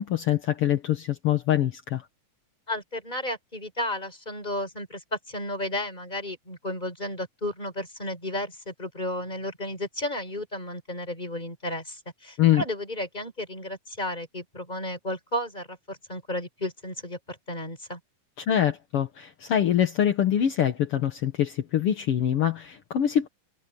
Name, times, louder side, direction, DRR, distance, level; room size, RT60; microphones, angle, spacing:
voice 1, 0.0-2.0 12.4-12.6 18.4-23.3, left 10 dB, 60° left, 1.6 m, -24 dB
voice 2, 2.7-18.0, left 1 dB, 10° left, 5.4 m, -33 dB
omnidirectional pair, 4.2 m